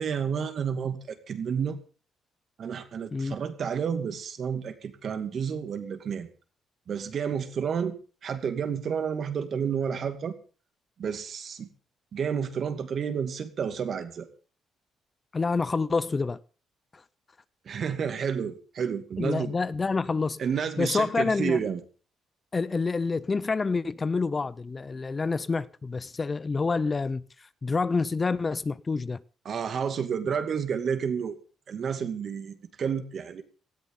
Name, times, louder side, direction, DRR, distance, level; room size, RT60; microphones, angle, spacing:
voice 1, 0.0-1.8 2.6-6.3 6.9-8.0 8.2-10.4 11.0-11.7 12.1-14.3 17.7-19.5 20.4-21.8 29.5-31.3 31.7-33.4, right 7 dB, 55° right, 2.4 m, -30 dB
voice 2, 15.3-16.4 19.2-20.4 20.8-21.6 22.5-27.2 27.6-29.2, left 4 dB, 30° left, 0.7 m, -27 dB
18.5 x 13.5 x 3.9 m
cardioid pair, 90°, 0 cm